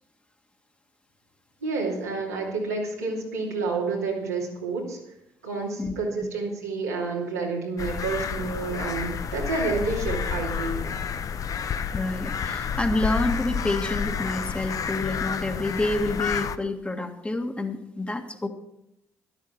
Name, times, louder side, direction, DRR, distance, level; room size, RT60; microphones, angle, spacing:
voice 1, 1.6-5.0 5.4-10.9, right 3 dB, 85° right, -4 dB, 2.8 m, -29 dB
sound 1, 7.8-16.6, left 7 dB, 45° left, 0.7 m, -30 dB
voice 2, 11.9-18.5, left 2 dB, 15° left, 4 dB, 1.7 m, -28 dB
13.0 x 12.0 x 4.4 m, 0.82 s
figure-of-eight pair, 45°, 8 cm